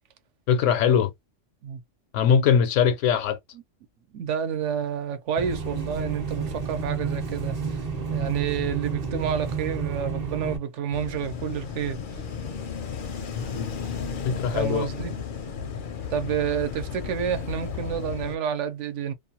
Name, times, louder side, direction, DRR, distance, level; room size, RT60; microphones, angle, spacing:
voice 1, 0.5-1.1 2.1-3.4 13.3-13.7 14.2-14.9, left 7 dB, 80° left, 0.9 m, -21 dB
voice 2, 4.1-7.8 8.1-12.0 14.5-15.1 16.1-19.1, right 8 dB, 70° right, 0.9 m, -29 dB
sound 1, 5.4-10.6, right 5 dB, 40° right, 0.6 m, -30 dB
sound 2, 10.9-18.4, left 6 dB, 60° left, 0.6 m, -34 dB
2.5 x 2.2 x 2.7 m
omnidirectional pair, 1.3 m